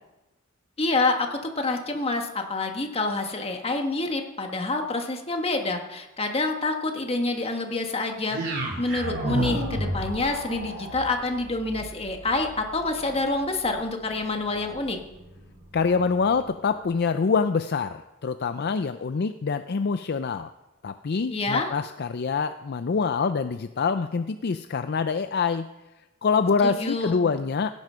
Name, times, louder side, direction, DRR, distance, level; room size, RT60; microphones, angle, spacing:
voice 1, 0.8-8.4 8.8-15.0 21.3-21.7 26.6-27.3, left 2 dB, 30° left, 4 dB, 1.5 m, -27 dB
sound 1, 8.3-16.5, right 1 dB, 55° right, 3.8 m, -34 dB
voice 2, 15.7-20.5 20.8-25.6 26.2-27.7, left 5 dB, 50° left, 10 dB, 0.4 m, -25 dB
17.0 x 9.6 x 5.7 m, 1.0 s
head